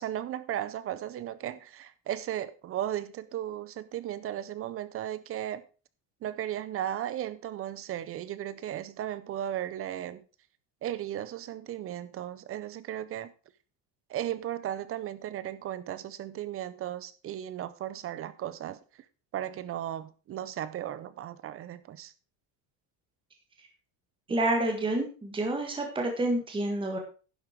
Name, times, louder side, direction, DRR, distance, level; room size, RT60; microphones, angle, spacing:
voice 1, 0.0-5.6 6.2-10.2 10.8-13.3 14.1-18.8 19.3-22.1, right 11 dB, 30° right, 0.4 m, -36 dB
voice 2, 24.3-27.0, right 1 dB, 10° right, 1.6 m, -28 dB
11.0 x 7.4 x 4.5 m
cardioid pair, 170°, 49 cm